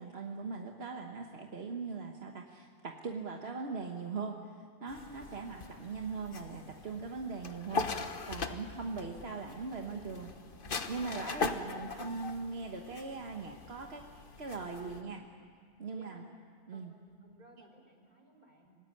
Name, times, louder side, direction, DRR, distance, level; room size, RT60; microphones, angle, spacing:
voice 1, 0.0-10.3 10.9-14.0 14.4-15.2 15.8-16.2 16.7-16.9, right 4 dB, 75° right, 2 dB, 1.6 m, -40 dB
sound 1, 4.9-15.0, left 4 dB, 60° left, 1.3 m, -41 dB
voice 2, 5.1-5.5 8.6-10.3 10.6-11.0 14.7-15.4 15.9-16.3 16.7-18.8, equal, 45° right, 2 dB, 4.2 m, -59 dB
26.0 x 18.5 x 9.9 m, 2.2 s
omnidirectional pair, 1.1 m